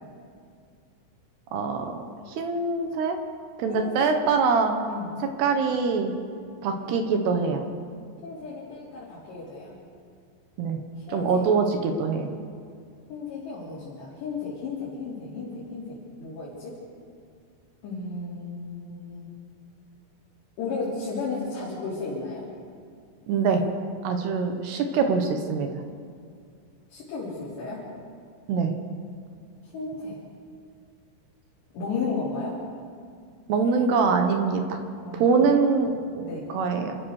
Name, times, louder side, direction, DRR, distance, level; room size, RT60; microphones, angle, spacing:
voice 1, 1.5-2.0 2.4-3.2 3.6-4.7 5.4-6.1 6.6-7.6 10.6-10.8 11.1-12.3 23.3-23.6 24.0-25.7 28.5-28.7 33.5-34.8 35.1-37.0, right 5 dB, 65° right, 5 dB, 3.1 m, -24 dB
voice 2, 3.7-4.1 4.9-5.1 6.8-7.0 8.2-9.7 11.0-11.5 13.1-16.7 17.8-19.3 20.6-22.5 24.9-25.0 26.9-27.8 29.7-30.2 31.7-32.6 35.0-35.6 36.2-36.5, left 4 dB, 60° left, -9 dB, 5.7 m, -34 dB
27.5 x 14.0 x 6.6 m, 2.3 s
omnidirectional pair, 5.6 m